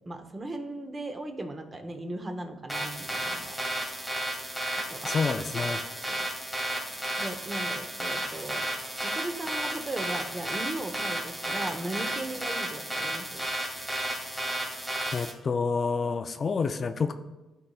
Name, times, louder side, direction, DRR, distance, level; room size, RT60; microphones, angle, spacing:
voice 1, 0.1-3.5 4.9-5.1 6.1-6.2 7.2-8.7 9.0-13.5, right 2 dB, 25° right, 7 dB, 0.8 m, -37 dB
sound 1, 2.7-15.3, right 1 dB, 5° right, 1.8 m, -33 dB
voice 2, 5.0-5.8 15.1-17.1, left 5 dB, 40° left, 9 dB, 0.3 m, -28 dB
12.0 x 4.0 x 2.4 m, 1.1 s
cardioid pair, 90°, 0 cm